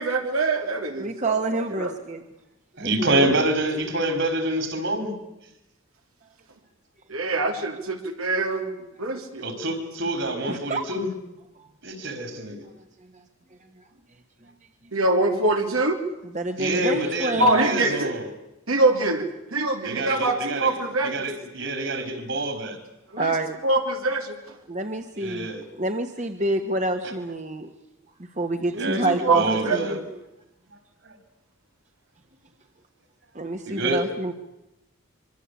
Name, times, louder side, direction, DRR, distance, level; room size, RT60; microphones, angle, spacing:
voice 1, 0.0-1.4 1.8-1.9 7.1-9.4 14.9-16.0 17.4-18.1 18.7-21.1 23.1-23.3 23.6-24.4 28.7-30.0, right 2 dB, 90° right, 4 dB, 3.4 m, -24 dB
voice 2, 1.0-2.2 2.8-3.3 10.5-10.8 11.6-11.7 16.3-17.8 23.2-23.6 24.7-27.7 28.4-30.0 33.3-34.3, right 2 dB, 35° right, 6 dB, 1.5 m, -27 dB
voice 3, 2.8-5.1 9.4-11.1 11.8-12.6 16.6-18.3 19.8-20.8 21.0-22.8 25.2-25.6 28.8-30.0 31.0-31.2 33.7-34.0, right 1 dB, 60° right, 7 dB, 5.1 m, -27 dB
25.5 x 24.5 x 8.5 m, 0.91 s
head